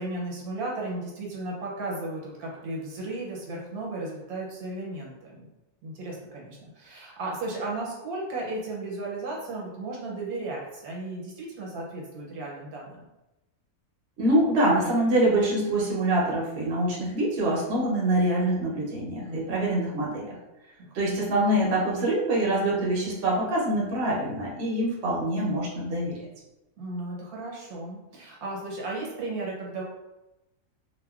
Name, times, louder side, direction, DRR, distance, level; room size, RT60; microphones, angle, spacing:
voice 1, 0.0-5.5 5.8-13.1 19.2-19.6 21.3-21.4 26.8-29.8, right 2 dB, 80° right, -3 dB, 1.2 m, -35 dB
voice 2, 14.2-20.4 20.9-26.2, right 1 dB, 55° right, -4 dB, 0.8 m, -25 dB
2.7 x 2.2 x 2.3 m, 0.97 s
omnidirectional pair, 1.6 m